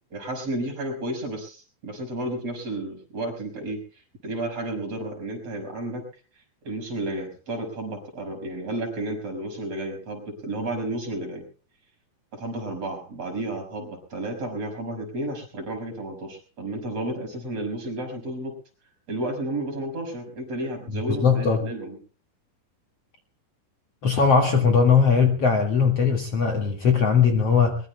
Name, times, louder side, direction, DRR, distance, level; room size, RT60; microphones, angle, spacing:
voice 1, 0.1-3.8 4.2-6.0 6.6-11.4 12.3-18.5 19.1-22.0, right 1 dB, 40° right, 2 dB, 6.4 m, -32 dB
voice 2, 20.9-21.6 24.0-27.8, left 5 dB, 45° left, 3 dB, 2.6 m, -20 dB
23.0 x 22.0 x 2.2 m, 0.38 s
omnidirectional pair, 4.4 m